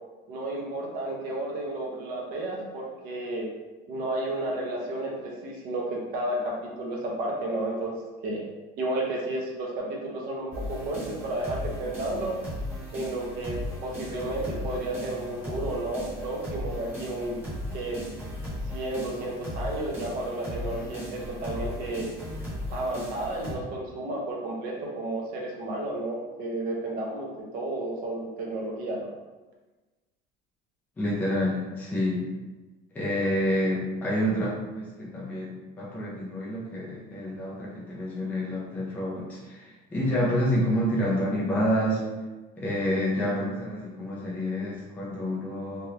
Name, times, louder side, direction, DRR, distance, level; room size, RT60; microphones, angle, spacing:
voice 1, 0.3-3.5 3.9-8.0 8.2-8.4 8.8-12.4 12.9-13.6 13.8-17.4 17.7-18.0 18.7-22.1 22.7-29.1, right 1 dB, 45° right, -2 dB, 0.7 m, -32 dB
sound 1, 10.5-23.5, left 1 dB, 10° right, 1.1 m, -36 dB
voice 2, 31.0-32.2 32.9-42.0 42.6-45.9, equal, 10° left, -6 dB, 0.4 m, -28 dB
3.3 x 2.4 x 2.8 m, 1.2 s
cardioid pair, 175°, 21 cm